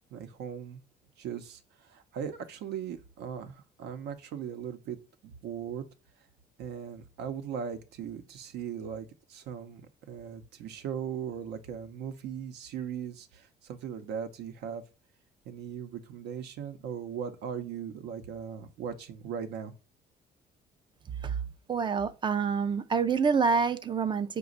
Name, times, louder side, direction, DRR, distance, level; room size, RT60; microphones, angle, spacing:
voice 1, 0.1-0.8 1.2-5.0 5.2-5.8 6.6-9.8 10.1-14.8 15.5-19.7, right 8 dB, 80° right, 0.7 m, -38 dB
voice 2, 21.7-24.4, right 5 dB, 30° right, 0.4 m, -27 dB
5.0 x 2.2 x 3.9 m
cardioid pair, 110°, 17 cm